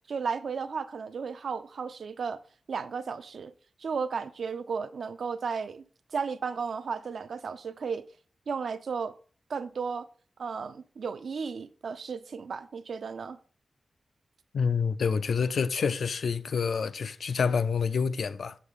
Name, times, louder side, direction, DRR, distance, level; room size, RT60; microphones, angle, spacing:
voice 1, 0.1-2.4 2.7-3.5 3.8-5.8 6.1-8.0 8.5-9.1 9.5-10.1 10.4-13.4, right 5 dB, 70° right, 0.5 m, -34 dB
voice 2, 14.5-18.6, left 6 dB, 70° left, 0.4 m, -27 dB
6.5 x 6.5 x 3.6 m
wide cardioid pair, 145°, 0 cm